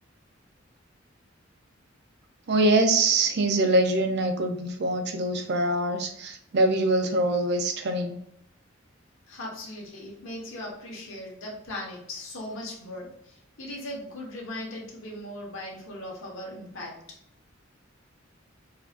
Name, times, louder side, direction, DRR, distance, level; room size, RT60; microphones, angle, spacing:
voice 1, 2.5-8.2, right 2 dB, 55° right, 5 dB, 0.6 m, -24 dB
voice 2, 9.3-17.0, left 1 dB, 80° left, -2 dB, 1.2 m, -38 dB
4.1 x 2.8 x 2.5 m, 0.71 s
head